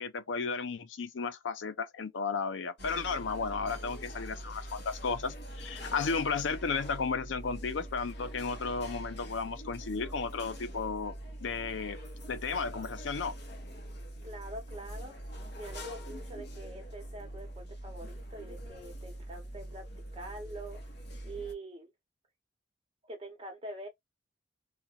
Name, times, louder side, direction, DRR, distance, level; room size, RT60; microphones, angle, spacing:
voice 1, 0.0-12.0 12.3-13.3, left 5 dB, 85° left, 0.5 m, -34 dB
sound 1, 2.8-21.5, right 1 dB, 65° left, 0.9 m, -43 dB
voice 2, 14.2-15.1 15.5-19.9 20.1-20.8 21.2-21.9 23.0-23.9, right 2 dB, 30° right, 1.0 m, -44 dB
2.5 x 2.2 x 2.8 m
head